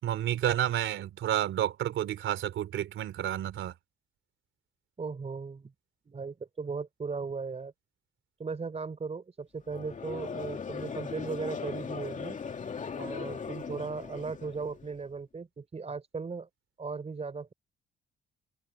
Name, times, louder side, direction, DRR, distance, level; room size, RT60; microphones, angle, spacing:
voice 1, 0.0-3.7, right 11 dB, 75° right, 3.8 m, -30 dB
voice 2, 5.0-5.7 6.1-7.7 8.4-12.4 13.0-16.5 16.8-17.5, right 4 dB, 35° right, 5.5 m, -37 dB
Conversation / Crowd, 9.7-15.0, left 6 dB, 40° left, 2.5 m, -39 dB
cardioid pair, 90°, 20 cm